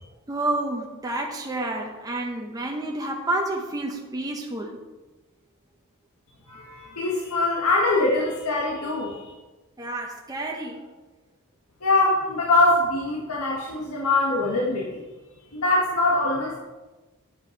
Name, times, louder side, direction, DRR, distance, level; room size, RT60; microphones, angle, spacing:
voice 1, 0.3-4.8 9.8-10.9, right 2 dB, 15° right, 0 dB, 0.9 m, -29 dB
voice 2, 6.5-9.3 11.8-15.0 15.5-16.6, left 2 dB, 80° left, -3 dB, 1.8 m, -23 dB
9.3 x 8.8 x 4.6 m, 1.2 s
head